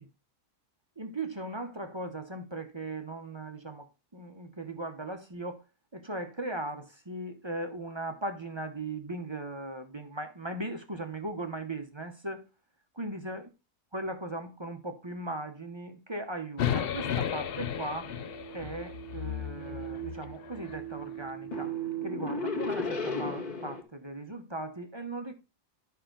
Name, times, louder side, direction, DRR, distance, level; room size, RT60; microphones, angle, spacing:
voice 1, 1.0-3.9 4.1-5.6 5.9-12.5 13.0-13.5 13.9-18.1 18.5-21.7 22.0-25.3, right 2 dB, 25° right, 0.8 m, -38 dB
sound 1, 16.6-20.8, left 9 dB, 55° left, 0.7 m, -34 dB
sound 2, 17.0-23.8, equal, 30° left, 1.4 m, -37 dB
10.5 x 5.6 x 3.8 m
omnidirectional pair, 1.4 m